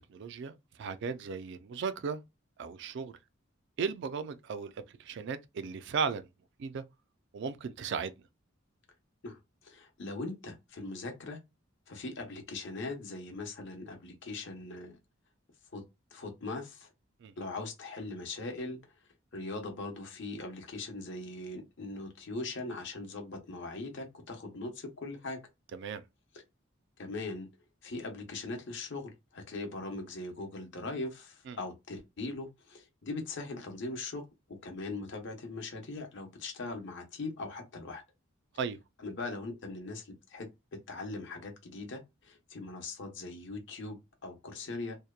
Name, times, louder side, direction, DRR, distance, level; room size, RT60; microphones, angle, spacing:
voice 1, 0.1-2.2 2.6-3.1 3.8-4.7 5.0-6.3 6.6-6.8 7.3-8.1 17.2-17.3 25.7-26.0 31.5-31.6 38.6-38.8, right 5 dB, 60° right, 0.3 m, -36 dB
voice 2, 9.2-11.4 11.9-15.0 15.7-15.8 16.1-16.9 17.4-18.8 19.3-25.4 27.0-27.5 27.8-34.2 34.5-38.0 39.0-45.0, left 2 dB, 60° left, 0.8 m, -40 dB
2.8 x 2.1 x 2.3 m
head